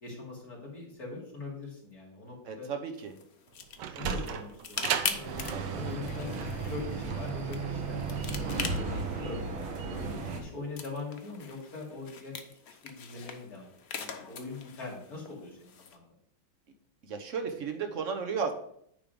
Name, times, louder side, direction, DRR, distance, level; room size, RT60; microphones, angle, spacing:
voice 1, 0.0-2.7 3.9-9.5 10.0-12.4 12.8-16.1, left 3 dB, 50° left, -4 dB, 3.0 m, -42 dB
voice 2, 2.4-3.1 5.5-5.8 8.2-8.4 17.0-18.5, right 6 dB, 50° right, 5 dB, 1.1 m, -35 dB
sound 1, 2.9-16.0, left 6 dB, 85° left, 0.5 m, -42 dB
Sliding door, 3.5-8.7, right 8 dB, 70° right, 1.2 m, -36 dB
sound 2, 5.3-10.4, right 4 dB, 85° right, 2.0 m, -35 dB
9.6 x 3.7 x 5.2 m, 0.67 s
omnidirectional pair, 2.2 m